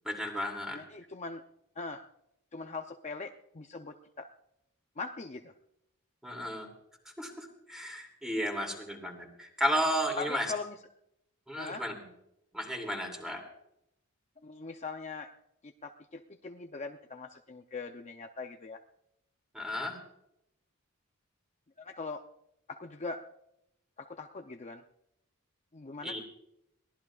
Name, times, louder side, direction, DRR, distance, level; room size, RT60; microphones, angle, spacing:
voice 1, 0.0-0.8 6.2-6.7 7.2-10.5 11.5-12.0 12.5-13.4 19.5-20.0 26.0-26.2, equal, ahead, 2 dB, 2.7 m, -33 dB
voice 2, 0.7-1.4 1.8-2.0 2.5-4.3 5.0-5.5 10.2-10.8 11.6-11.9 14.4-15.3 15.6-18.8 21.8-22.2 22.7-23.3 24.0-24.8 25.7-26.2, left 4 dB, 30° left, 5 dB, 0.6 m, -41 dB
22.5 x 17.5 x 2.4 m, 0.80 s
head